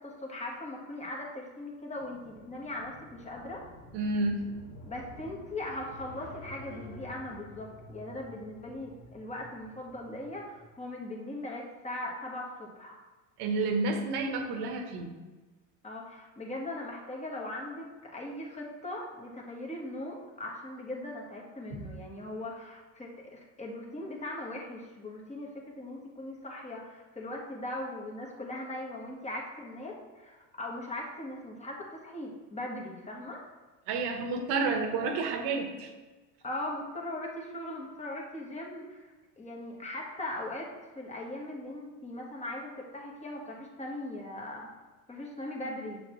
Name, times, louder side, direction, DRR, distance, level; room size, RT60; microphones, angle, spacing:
voice 1, 0.0-3.6 4.8-13.0 15.8-25.5 25.7-33.5 36.4-44.7 45.1-46.0, left 1 dB, 15° left, -1 dB, 1.4 m, -39 dB
sound 1, 1.9-10.7, left 1 dB, 85° left, 1.9 m, -50 dB
voice 2, 3.9-4.4 13.4-15.1 21.7-21.9 33.9-35.9, right 3 dB, 70° right, 4 dB, 1.2 m, -30 dB
7.8 x 6.4 x 3.1 m, 1.2 s
supercardioid pair, 115°, 42 cm